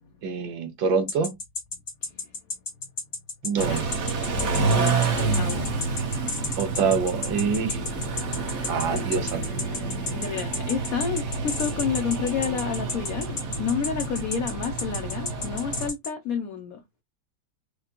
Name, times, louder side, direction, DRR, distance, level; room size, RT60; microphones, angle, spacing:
voice 1, 0.2-1.3 3.4-3.8 6.6-7.8 8.7-9.4, right 5 dB, 85° right, 1.8 m, -25 dB
sound 1, 1.1-16.1, left 4 dB, 40° left, 0.9 m, -32 dB
Car / Idling / Accelerating revving vroom, 3.6-15.9, right 4 dB, 45° right, 1.1 m, -29 dB
voice 2, 4.6-5.8 8.9-9.1 10.1-16.8, left 7 dB, 70° left, 0.8 m, -30 dB
4.9 x 2.2 x 2.8 m
omnidirectional pair, 2.0 m